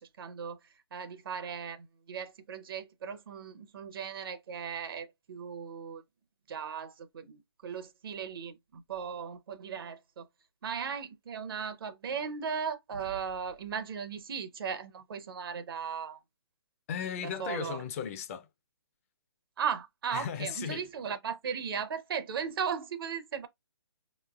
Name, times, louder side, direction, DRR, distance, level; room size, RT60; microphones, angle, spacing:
voice 1, 0.2-0.6 0.9-6.0 6.5-10.3 10.6-16.2 17.2-17.8 19.6-23.5, right 7 dB, 60° right, 0.6 m, -37 dB
voice 2, 16.9-18.5 20.1-20.9, left 8 dB, 35° left, 0.4 m, -36 dB
4.6 x 3.0 x 2.3 m
hypercardioid pair, 150°, 14 cm